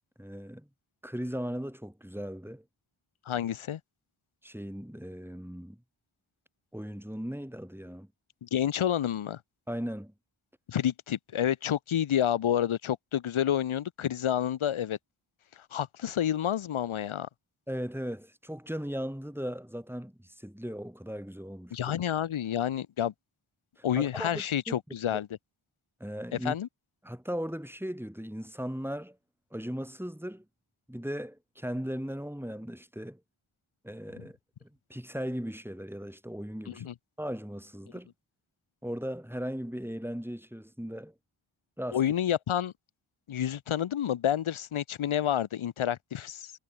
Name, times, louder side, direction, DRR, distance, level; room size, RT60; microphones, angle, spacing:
voice 1, 0.2-0.7 1.0-2.6 4.4-5.8 6.7-8.1 9.7-10.1 17.7-21.8 24.0-24.7 25.1-25.2 26.0-26.6 27.0-29.2 29.5-30.4 30.9-33.2 33.8-36.8 37.2-38.1 38.8-41.1 41.8-42.0, equal, 5° right, 3.2 m, -37 dB
voice 2, 3.3-3.8 8.4-9.4 10.7-15.0 15.7-17.3 21.7-23.1 23.8-25.3 26.4-26.7 36.7-36.9 41.9-42.7 43.3-46.5, left 10 dB, 75° left, 0.7 m, -29 dB
wide cardioid pair, 45°, 49 cm